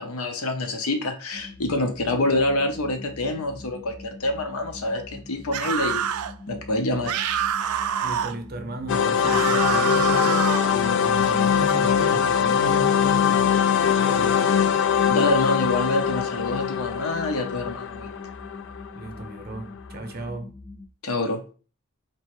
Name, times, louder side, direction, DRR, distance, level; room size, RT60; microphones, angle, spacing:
voice 1, 0.0-6.0 6.5-7.2 15.1-18.1 21.0-21.4, left 2 dB, 90° left, 0.8 m, -26 dB
sound 1, 1.3-20.9, left 2 dB, 20° left, 1.4 m, -43 dB
sound 2, 5.5-6.3 7.1-8.4 9.2-10.7, right 8 dB, 90° right, 0.4 m, -26 dB
voice 2, 8.0-14.6 18.9-20.6, right 2 dB, 45° right, 0.6 m, -35 dB
sound 3, 8.9-19.6, left 8 dB, 60° left, 0.3 m, -22 dB
4.3 x 3.1 x 3.0 m
head